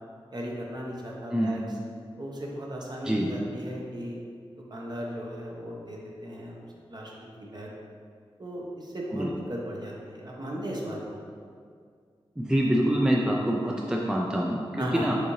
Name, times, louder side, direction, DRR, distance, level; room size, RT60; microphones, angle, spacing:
voice 1, 0.3-1.6 2.2-4.2 4.7-6.6 6.9-7.1 7.4-7.7 8.4-11.2 14.8-15.1, equal, 45° right, -3 dB, 0.9 m, -36 dB
voice 2, 1.3-1.6 3.0-3.3 9.1-9.3 12.4-15.2, equal, 5° right, -2 dB, 0.5 m, -26 dB
6.2 x 2.7 x 3.1 m, 2.1 s
cardioid pair, 45°, 10 cm